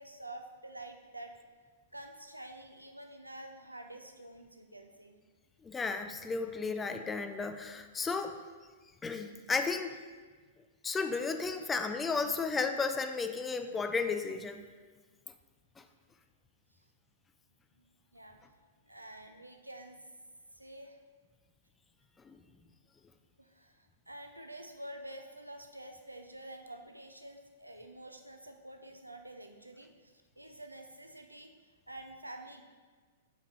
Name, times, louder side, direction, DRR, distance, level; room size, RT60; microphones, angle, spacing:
voice 1, 0.0-1.3 1.9-5.2 18.1-18.4 18.9-20.0 20.5-21.0 23.4-31.5 31.9-32.6, right 1 dB, 90° right, 5 dB, 0.4 m, -48 dB
voice 2, 5.6-8.4 9.0-10.0 10.8-14.7 15.8-15.9 22.2-22.4, left 4 dB, 15° left, 8 dB, 0.4 m, -33 dB
6.2 x 4.5 x 3.7 m, 1.4 s
figure-of-eight pair, 105°, 0 cm